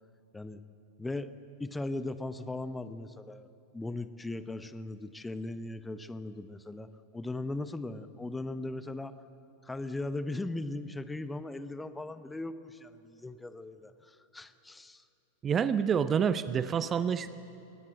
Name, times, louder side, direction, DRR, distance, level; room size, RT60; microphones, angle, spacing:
voice 1, 1.0-1.3 1.6-3.5 3.7-9.1 9.6-15.0, left 2 dB, 10° left, 13 dB, 0.8 m, -38 dB
voice 2, 15.4-17.3, right 7 dB, 25° right, 14 dB, 0.6 m, -27 dB
22.0 x 18.5 x 7.8 m, 2.8 s
figure-of-eight pair, 90°, 0 cm